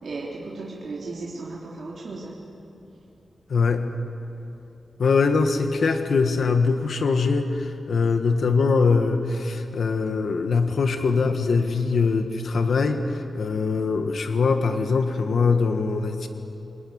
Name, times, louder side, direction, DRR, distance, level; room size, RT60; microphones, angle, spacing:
voice 1, 0.0-2.3, right 3 dB, 50° right, -5 dB, 3.4 m, -35 dB
voice 2, 3.5-3.8 5.0-16.3, left 4 dB, 70° left, 6 dB, 1.6 m, -22 dB
27.0 x 21.5 x 9.6 m, 2.8 s
wide cardioid pair, 175°, 0 cm